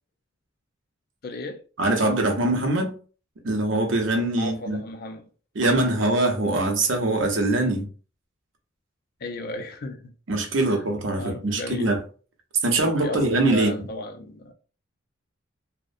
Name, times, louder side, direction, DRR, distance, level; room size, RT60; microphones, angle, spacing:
voice 1, 1.2-1.6 4.4-5.3 9.2-10.1 10.7-10.8 11.2-12.0 12.7-14.5, left 2 dB, 50° left, 0.4 m, -34 dB
voice 2, 1.8-3.0 3.4-4.8 5.6-7.9 10.3-12.0 12.6-13.7, right 2 dB, 70° right, 0.6 m, -23 dB
2.4 x 2.0 x 2.5 m
head